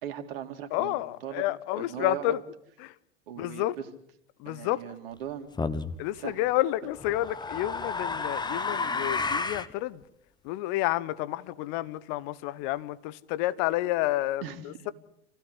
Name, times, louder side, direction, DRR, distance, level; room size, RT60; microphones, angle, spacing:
voice 1, 0.0-1.0 1.2-1.4 1.8-2.4 3.3-3.6 4.5-5.5 6.2-6.4 14.4-14.9, right 10 dB, 65° right, 2.7 m, -38 dB
voice 2, 0.7-2.4 2.8-2.9 3.4-3.8 4.4-4.8 6.0-10.0 10.4-14.9, left 16 dB, 50° left, 1.0 m, -30 dB
sound 1, 5.6-6.0 7.0-9.7, left 4 dB, 15° left, 1.3 m, -31 dB
27.5 x 16.0 x 8.2 m
figure-of-eight pair, 80°, 31 cm